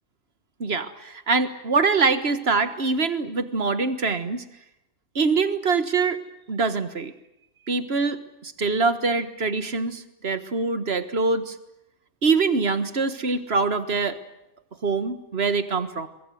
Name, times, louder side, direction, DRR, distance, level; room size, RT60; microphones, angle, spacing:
voice 1, 0.6-4.4 5.2-6.2 6.5-7.1 7.7-11.6 12.2-14.2 14.8-16.1, right 4 dB, 65° right, 11 dB, 1.8 m, -24 dB
23.5 x 22.0 x 9.3 m, 0.85 s
omnidirectional pair, 1.2 m